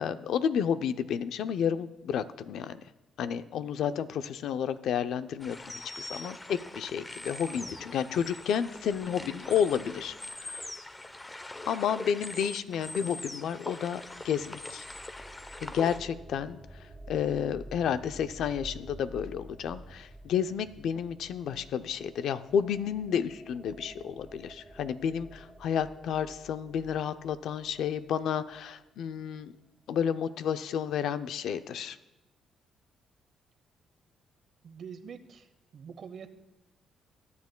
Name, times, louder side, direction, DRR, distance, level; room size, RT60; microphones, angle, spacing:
voice 1, 0.0-2.8 3.2-10.7 11.7-14.8 15.6-16.6 17.1-29.5 29.9-32.0, left 8 dB, 75° left, 12 dB, 0.5 m, -31 dB
sound 1, 5.4-16.0, left 2 dB, 20° left, 0.7 m, -42 dB
sound 2, 13.8-28.6, right 1 dB, 20° right, 1.0 m, -50 dB
voice 2, 34.6-36.3, right 6 dB, 60° right, 11 dB, 0.8 m, -45 dB
21.5 x 9.5 x 2.2 m, 1.0 s
cardioid pair, 90°, 0 cm